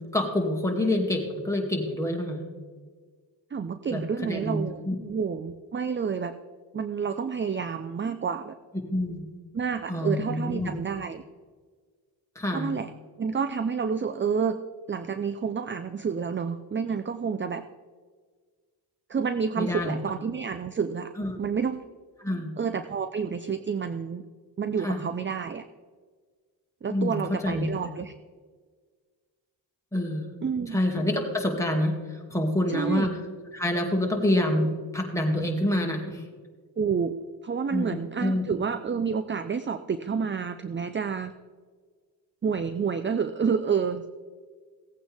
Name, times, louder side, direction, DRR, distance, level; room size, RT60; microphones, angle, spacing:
voice 1, 0.1-2.4 3.9-4.6 4.9-5.0 8.9-9.2 9.9-10.7 12.4-12.8 19.6-19.9 21.2-21.4 22.2-22.5 24.8-25.0 26.9-27.7 29.9-30.3 30.7-33.1 33.5-36.2 37.7-38.4, left 1 dB, 5° left, 0 dB, 2.3 m, -27 dB
voice 2, 3.5-6.3 6.7-8.5 9.5-11.2 12.5-12.9 13.2-14.6 14.9-17.6 19.1-21.1 21.4-21.8 22.6-24.2 24.6-25.6 26.8-28.1 30.4-30.8 32.7-33.1 36.8-37.2 37.4-41.3 42.4-44.1, right 6 dB, 25° right, 11 dB, 0.5 m, -29 dB
17.5 x 8.7 x 3.5 m, 1.5 s
cardioid pair, 85°, 46 cm